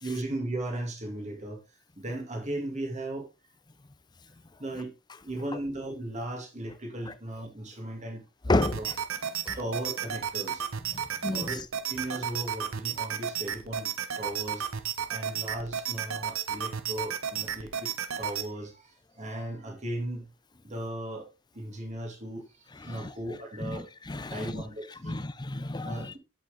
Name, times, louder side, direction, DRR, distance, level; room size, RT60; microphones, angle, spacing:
voice 1, 0.0-1.6 2.0-3.3 4.6-4.9 5.2-8.9 9.6-10.6 11.3-11.6 11.9-14.7 15.1-20.3 20.6-23.9 24.3-25.3 25.8-26.2, right 1 dB, 35° right, 2.5 m, -37 dB
voice 2, 8.5-8.9 9.5-9.6 11.2-11.5 22.9-23.1 23.6-24.6 25.0-26.1, left 2 dB, 20° left, 0.5 m, -30 dB
sound 1, 8.6-18.5, right 8 dB, 80° right, 1.0 m, -33 dB
7.8 x 7.5 x 3.7 m
head